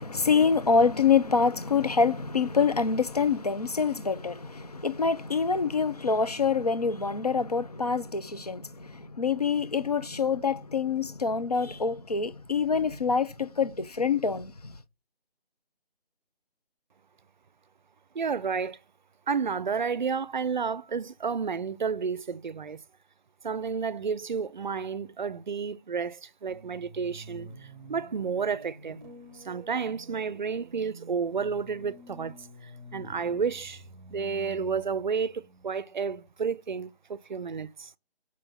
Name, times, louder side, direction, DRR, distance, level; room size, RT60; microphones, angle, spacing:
voice 1, 0.0-14.7, left 5 dB, 40° left, 0.5 m, -26 dB
voice 2, 18.1-18.8 19.3-22.8 23.4-29.0 29.3-32.3 32.6-33.8 34.1-37.9, right 5 dB, 50° right, 0.5 m, -31 dB
sound 1, 26.5-36.4, right 1 dB, 10° right, 0.9 m, -48 dB
6.3 x 5.6 x 4.0 m
figure-of-eight pair, 155°, 30 cm